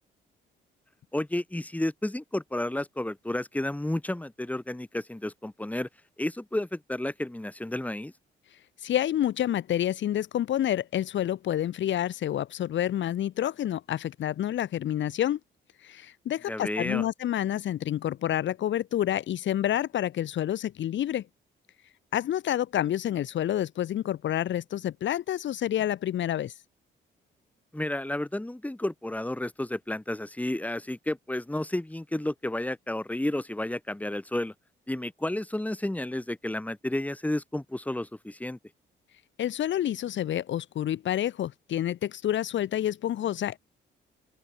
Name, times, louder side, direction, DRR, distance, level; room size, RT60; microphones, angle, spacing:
voice 1, 1.1-5.9 6.2-8.1 16.5-17.0 27.7-34.5 34.9-38.6, left 1 dB, 5° left, 3.1 m, -31 dB
voice 2, 8.8-15.4 15.8-21.2 22.1-26.5 39.4-43.6, left 11 dB, 70° left, 2.6 m, -28 dB
open air
cardioid pair, 90°, 20 cm